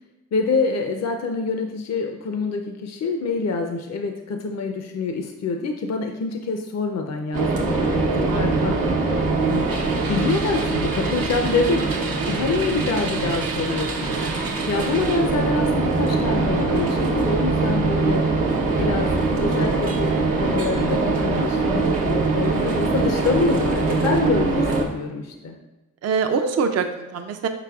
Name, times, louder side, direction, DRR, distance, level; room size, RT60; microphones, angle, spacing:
voice 1, 0.3-8.8 9.4-9.7 10.1-12.0 12.3-14.2 14.7-18.2 18.7-20.1 20.4-25.6, left 4 dB, 50° left, 4 dB, 0.5 m, -26 dB
sound 1, 7.3-24.9, right 3 dB, 80° right, 0.8 m, -22 dB
voice 2, 8.3-8.6 12.2-12.4 26.0-27.5, right 5 dB, 50° right, 6 dB, 0.4 m, -24 dB
4.9 x 4.5 x 2.3 m, 1.1 s
cardioid pair, 45°, 33 cm